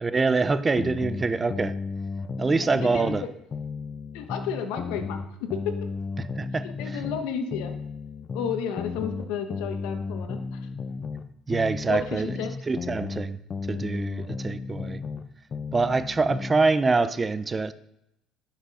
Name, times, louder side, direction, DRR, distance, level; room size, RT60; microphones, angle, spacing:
voice 1, 0.0-1.7 2.4-3.2 6.4-7.0 11.5-12.3 12.7-13.4 13.7-15.0 15.7-17.7, right 3 dB, 20° right, 13 dB, 0.6 m, -25 dB
sound 1, 0.8-3.2 3.5-7.2 7.5-11.2 11.5-15.2 15.5-16.6, left 4 dB, 35° left, 0.7 m, -34 dB
voice 2, 2.5-3.3 4.1-5.7 6.6-7.7 8.3-10.6 11.9-12.5, left 7 dB, 80° left, 6 dB, 1.1 m, -32 dB
11.0 x 5.8 x 4.2 m, 0.84 s
cardioid pair, 105°, 0 cm